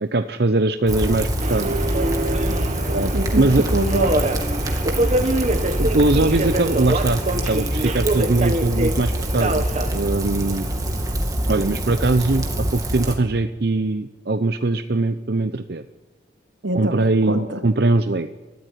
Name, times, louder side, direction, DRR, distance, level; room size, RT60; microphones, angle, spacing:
voice 1, 0.0-1.8 2.9-3.7 5.0-5.2 5.8-7.2 7.5-9.7 9.9-10.7 11.5-15.8 16.7-18.3, right 2 dB, 55° right, 9 dB, 0.7 m, -21 dB
Rain, 0.9-13.2, right 1 dB, 20° right, 2.3 m, -25 dB
Subway metro underground, 1.4-11.1, right 1 dB, 35° right, 1.4 m, -25 dB
voice 2, 2.5-3.4 3.7-4.3 16.6-17.6, right 1 dB, 80° right, 6 dB, 2.1 m, -26 dB
22.5 x 13.5 x 10.0 m, 1.2 s
head